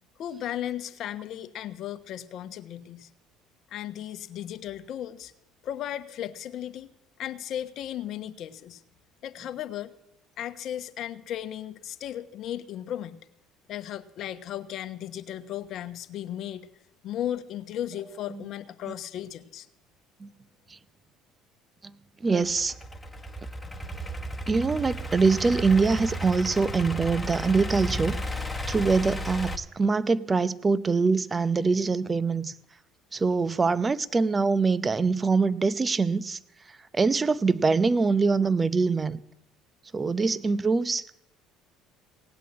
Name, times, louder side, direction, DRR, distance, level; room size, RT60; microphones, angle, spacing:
voice 1, 0.2-3.1 3.7-5.3 5.6-6.9 7.2-8.8 9.2-9.9 10.4-13.2 13.7-16.6 17.0-19.7, left 11 dB, 60° left, 1.0 m, -35 dB
voice 2, 22.2-22.7 24.5-28.2 28.7-32.5 33.1-36.4 36.7-39.2 39.9-41.1, right 4 dB, 25° right, 0.7 m, -24 dB
Idling / Accelerating revving vroom, 22.4-29.6, equal, 10° left, 1.4 m, -34 dB
17.5 x 8.4 x 8.6 m
hypercardioid pair, 75°, 0 cm